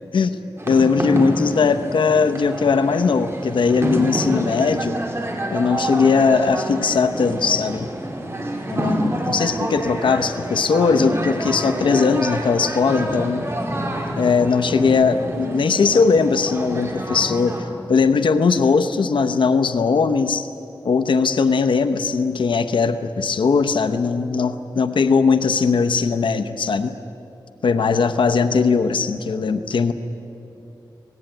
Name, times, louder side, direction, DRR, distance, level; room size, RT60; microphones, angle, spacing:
sound 1, 0.6-17.6, right 1 dB, 30° right, 4.0 m, -27 dB
voice 1, 0.7-5.0 5.5-7.9 8.7-13.5 14.2-20.5 20.8-26.9 27.6-29.9, left 5 dB, 90° left, 8 dB, 0.8 m, -19 dB
26.0 x 19.0 x 9.0 m, 2.9 s
wide cardioid pair, 80°, 8 cm